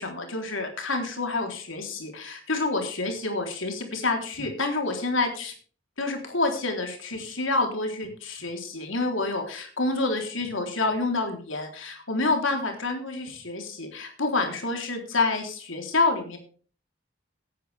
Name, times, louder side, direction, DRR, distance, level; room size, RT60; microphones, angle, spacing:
voice 1, 0.0-5.5 6.0-16.4, left 3 dB, 90° left, 4 dB, 3.7 m, -28 dB
17.0 x 10.5 x 3.5 m, 0.41 s
head